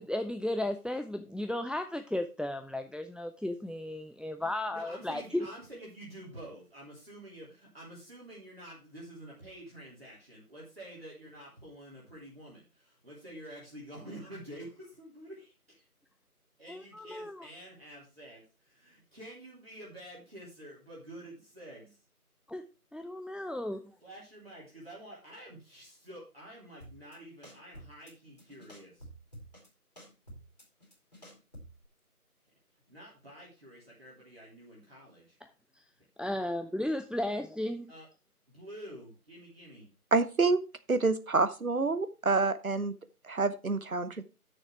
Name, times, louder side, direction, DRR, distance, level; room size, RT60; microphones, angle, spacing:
voice 1, 0.0-5.5 16.7-17.5 22.5-23.8 35.4-35.5 35.7-35.8 36.2-37.9, left 1 dB, ahead, 0.4 m, -35 dB
voice 2, 4.6-15.9 16.6-22.0 24.0-29.0 32.9-35.4 36.2-36.4 37.9-38.1 38.5-39.9, right 1 dB, 40° right, 3.4 m, -49 dB
sound 1, 26.8-27.2 27.4-28.1 28.4-29.7 30.0-31.9, right 1 dB, 30° left, 2.8 m, -50 dB
voice 3, 40.1-40.6 40.9-42.9 43.2-44.2, right 3 dB, 65° right, 1.0 m, -27 dB
8.7 x 6.5 x 4.5 m
figure-of-eight pair, 175°, 45 cm